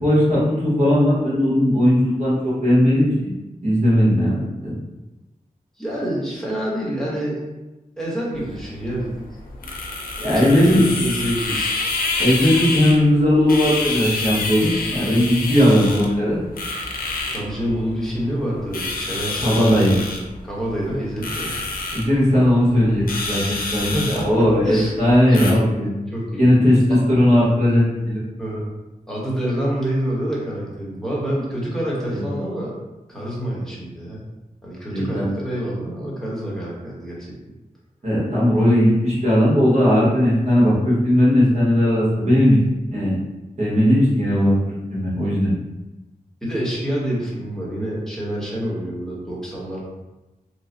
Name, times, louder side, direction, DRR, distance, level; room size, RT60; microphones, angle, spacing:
voice 1, 0.0-3.3 3.6-4.7 10.2-10.8 12.2-16.4 19.4-19.9 21.9-25.9 26.4-28.2 32.1-32.3 34.9-35.3 38.0-42.6 42.9-43.1 43.6-44.6 44.9-45.5, equal, 50° right, -7 dB, 1.5 m, -17 dB
voice 2, 5.8-7.4 8.0-9.1 10.3-11.7 17.3-20.1 20.4-21.5 23.9-24.9 25.3-25.8 26.1-26.5 26.9-27.0 28.4-28.7 29.1-32.7 33.1-34.2 34.6-37.3 46.4-49.8, equal, 5° left, -6 dB, 1.1 m, -27 dB
sound 1, 8.3-25.5, left 3 dB, 80° left, 0.6 m, -28 dB
3.1 x 2.2 x 3.9 m, 1.1 s
wide cardioid pair, 95°, 15 cm